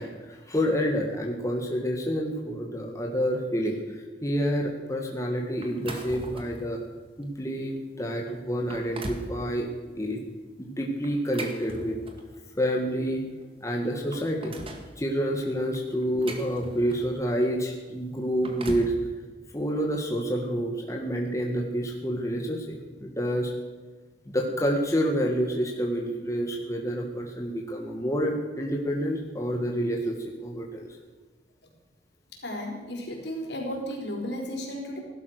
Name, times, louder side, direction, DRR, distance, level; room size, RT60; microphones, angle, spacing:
voice 1, 0.0-6.8 7.2-9.7 10.0-10.2 10.6-12.0 12.6-13.2 13.6-14.6 15.0-18.9 19.5-23.5 24.3-30.9, equal, 15° left, 1 dB, 1.8 m, -28 dB
sound 1, 5.6-6.7 7.2-7.4 8.0-8.1 8.5-9.3 11.0-12.4 13.4-13.5 13.8-14.9 15.7-17.2 18.2-19.0, right 1 dB, 30° right, 1.9 m, -39 dB
voice 2, 32.4-35.0, equal, 70° left, 0 dB, 4.5 m, -34 dB
16.5 x 12.5 x 6.5 m, 1.4 s
head